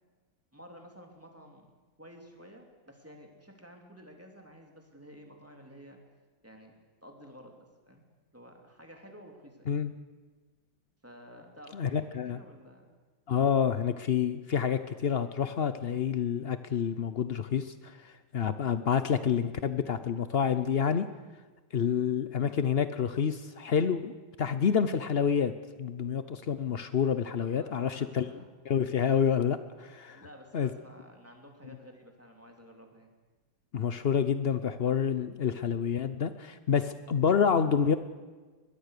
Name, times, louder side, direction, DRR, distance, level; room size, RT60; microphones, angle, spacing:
voice 1, 0.5-1.7 2.0-6.0 6.4-6.7 7.0-8.0 8.3-9.8 11.0-12.9 27.4-28.5 30.1-33.1, equal, 5° right, 2 dB, 3.1 m, -52 dB
voice 2, 11.7-12.4 13.3-21.1 21.7-25.5 25.8-28.3 28.6-30.2 30.5-30.7 33.7-38.0, left 7 dB, 90° left, 12 dB, 0.5 m, -28 dB
22.0 x 21.5 x 6.7 m, 1.3 s
omnidirectional pair, 2.1 m